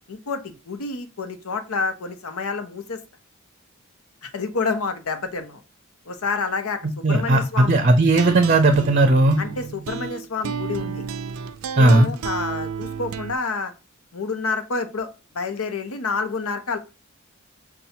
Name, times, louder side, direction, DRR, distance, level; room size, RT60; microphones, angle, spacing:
voice 1, 0.1-3.0 4.2-5.6 6.1-7.8 9.4-11.1 11.8-13.7 14.1-15.1 15.3-16.8, left 4 dB, 80° left, 8 dB, 0.7 m, -28 dB
voice 2, 7.0-9.4 11.8-12.1, right 2 dB, 35° right, 6 dB, 0.5 m, -16 dB
sound 1, 8.1-13.4, right 6 dB, 90° right, 0.4 m, -32 dB
5.6 x 2.3 x 2.7 m, 0.30 s
head